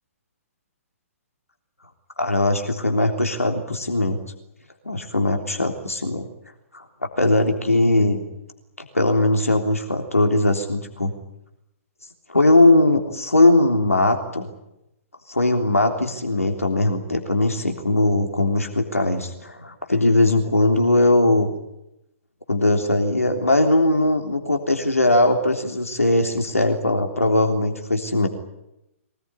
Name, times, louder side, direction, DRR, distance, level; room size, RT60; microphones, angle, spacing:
voice 1, 2.2-4.2 4.8-6.3 6.7-8.2 8.8-11.1 12.3-14.5 15.3-21.5 22.5-28.3, left 2 dB, 80° left, 4 dB, 3.4 m, -20 dB
24.0 x 20.0 x 9.8 m, 0.85 s
figure-of-eight pair, 125°, 8 cm